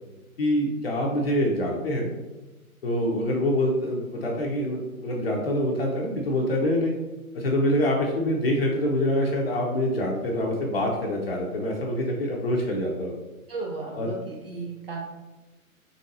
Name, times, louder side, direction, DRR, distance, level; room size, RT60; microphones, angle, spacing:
voice 1, 0.4-2.1 2.8-7.0 7.3-13.1 13.9-14.1, left 1 dB, 45° left, -1 dB, 0.6 m, -25 dB
voice 2, 3.0-3.3 13.5-15.1, right 4 dB, 40° right, -2 dB, 0.6 m, -35 dB
3.9 x 3.4 x 2.6 m, 1.1 s
figure-of-eight pair, 135°, 43 cm